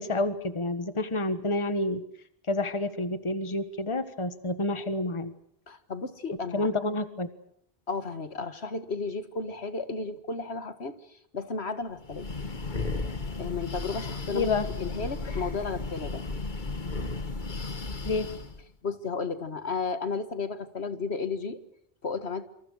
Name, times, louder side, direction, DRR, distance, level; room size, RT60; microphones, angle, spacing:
voice 1, 0.0-2.0 2.5-5.3 6.5-7.3 14.3-14.6 18.0-18.3, left 2 dB, 30° left, 11 dB, 1.5 m, -29 dB
voice 2, 5.7-6.7 7.9-11.0 11.3-12.3 12.9-14.5 14.8-16.2 18.8-21.6 22.0-22.4, left 4 dB, 70° left, 10 dB, 2.0 m, -33 dB
Breathing, 12.0-18.6, left 3 dB, 45° left, 1.7 m, -34 dB
27.5 x 26.5 x 6.5 m, 0.67 s
omnidirectional pair, 1.1 m